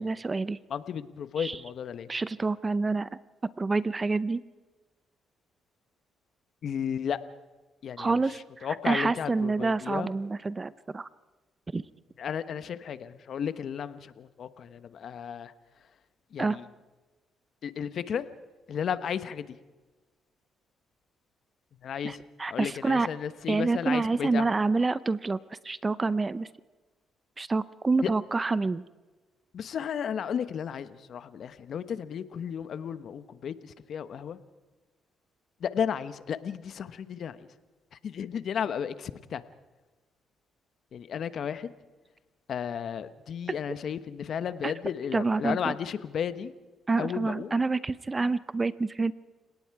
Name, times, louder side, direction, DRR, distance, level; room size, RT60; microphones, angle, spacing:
voice 1, 0.0-0.6 1.4-1.6 2.1-3.1 3.6-4.4 8.0-11.1 11.7-11.8 16.4-16.6 22.0-23.1 23.5-25.4 25.6-26.5 27.4-28.8 44.6-44.7 45.1-45.7 46.9-49.1, right 3 dB, 25° right, 17 dB, 0.6 m, -27 dB
voice 2, 0.7-2.1 6.6-7.2 7.8-8.1 8.6-10.1 12.2-15.5 16.3-16.6 17.6-18.2 18.7-19.6 21.8-22.2 22.5-24.5 28.0-28.1 29.5-34.4 35.6-37.5 37.9-39.4 40.9-41.7 42.5-46.5 47.0-47.5, left 8 dB, 60° left, 13 dB, 1.1 m, -33 dB
29.5 x 18.0 x 4.8 m, 1.3 s
cardioid pair, 90°, 0 cm